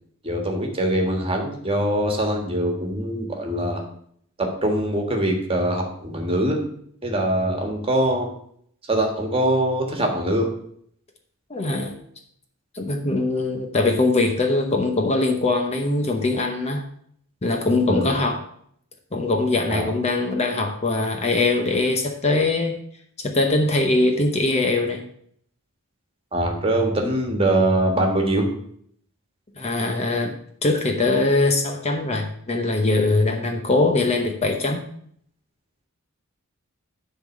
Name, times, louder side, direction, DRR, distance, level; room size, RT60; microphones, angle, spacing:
voice 1, 0.2-3.8 4.4-6.6 7.0-8.3 8.9-10.5 17.9-18.2 19.7-19.9 26.3-28.5, right 1 dB, 25° right, 2 dB, 1.6 m, -23 dB
voice 2, 11.5-11.9 12.7-16.8 17.4-18.4 19.1-22.8 23.2-25.0 29.6-30.4 30.6-34.8, left 2 dB, 30° left, 3 dB, 0.9 m, -22 dB
10.5 x 4.0 x 6.4 m, 0.65 s
head